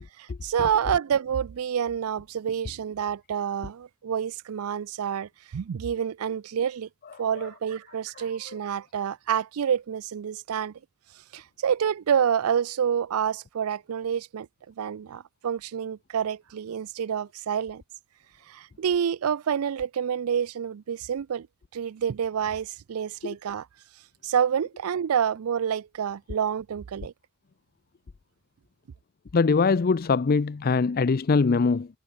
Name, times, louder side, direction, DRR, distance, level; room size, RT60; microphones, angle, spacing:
voice 1, 0.2-6.9 7.2-10.7 11.3-14.5 14.8-17.8 18.5-21.5 21.7-23.7 24.2-27.1, right 8 dB, 80° right, 0.4 m, -28 dB
voice 2, 29.3-31.9, left 4 dB, 45° left, 0.5 m, -22 dB
head